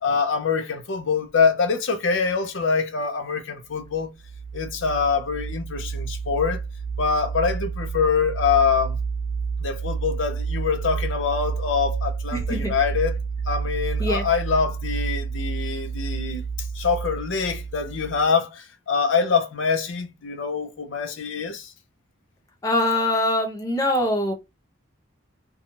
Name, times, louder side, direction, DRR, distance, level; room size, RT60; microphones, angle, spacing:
voice 1, 0.0-4.1 4.5-6.6 7.0-9.0 9.6-13.2 13.5-21.7, left 5 dB, 70° left, 0.5 m, -24 dB
sound 1, 3.8-18.3, right 5 dB, 80° right, 0.3 m, -30 dB
voice 2, 12.3-12.7 14.0-14.2 22.6-24.3, left 1 dB, 15° left, 0.5 m, -23 dB
2.9 x 2.3 x 2.7 m
head